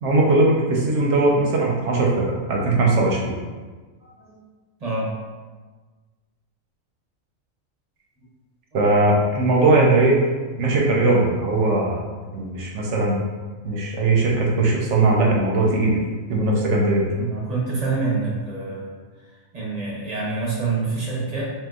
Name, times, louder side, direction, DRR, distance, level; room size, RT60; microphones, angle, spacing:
voice 1, 0.0-3.3 8.7-10.2 10.6-12.0 12.3-13.2 13.6-16.0 16.3-17.1, right 2 dB, 65° right, -2 dB, 0.9 m, -19 dB
voice 2, 4.0-4.4 4.8-5.1 17.2-18.9 19.5-21.5, right 3 dB, 35° right, -6 dB, 0.8 m, -26 dB
3.7 x 2.5 x 2.3 m, 1.4 s
omnidirectional pair, 1.4 m